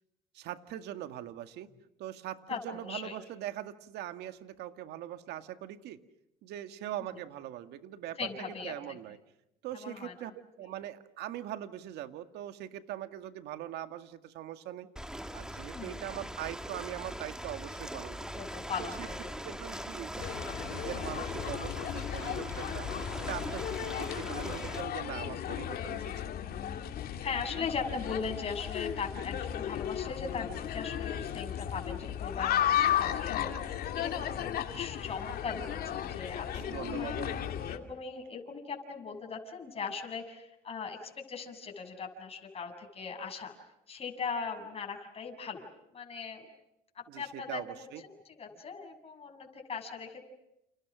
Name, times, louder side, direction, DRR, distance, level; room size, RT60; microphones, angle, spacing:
voice 1, 0.3-1.7 2.0-6.0 6.4-9.2 9.6-10.3 10.6-14.9 15.3-18.4 18.8-19.1 19.4-20.4 20.7-22.9 23.2-26.1 36.5-37.4 47.1-48.0, right 12 dB, 85° right, 9 dB, 2.0 m, -41 dB
voice 2, 2.5-3.2 8.2-8.7 9.7-10.3 15.7-16.0 18.4-19.3 19.7-19.8 27.2-37.2 37.6-43.5 43.9-45.7 45.9-46.5 47.0-47.6 48.0-50.2, left 5 dB, 35° left, 3 dB, 7.1 m, -39 dB
Ocean, 15.0-24.8, equal, 5° right, 2.4 m, -41 dB
sound 1, 20.2-37.8, left 10 dB, 65° left, 2.7 m, -35 dB
30.0 x 30.0 x 6.3 m, 0.85 s
cardioid pair, 110°, 17 cm